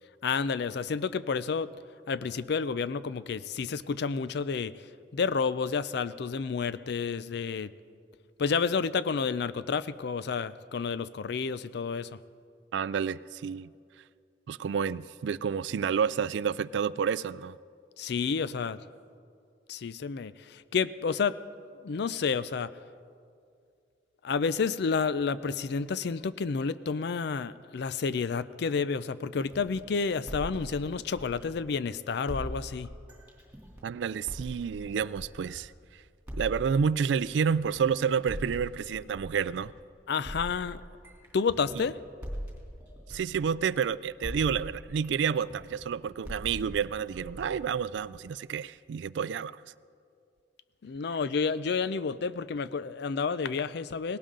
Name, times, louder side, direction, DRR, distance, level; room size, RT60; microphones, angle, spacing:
voice 1, 0.2-1.7 2.1-4.7 5.1-7.7 8.4-12.2 18.0-18.8 19.7-21.4 21.8-22.7 24.2-32.9 40.1-40.8 41.3-42.0 50.8-54.2, left 5 dB, 65° left, 16 dB, 0.4 m, -30 dB
voice 2, 12.7-13.7 14.5-17.6 33.8-35.7 36.3-39.7 41.8-41.9 43.1-49.6, right 7 dB, 70° right, 19 dB, 0.3 m, -29 dB
sound 1, 29.4-31.8 32.3-35.8 36.3-39.8 40.2-43.9 44.2-48.3, equal, 10° right, 3.0 m, -42 dB
19.0 x 17.5 x 3.8 m, 2.3 s
head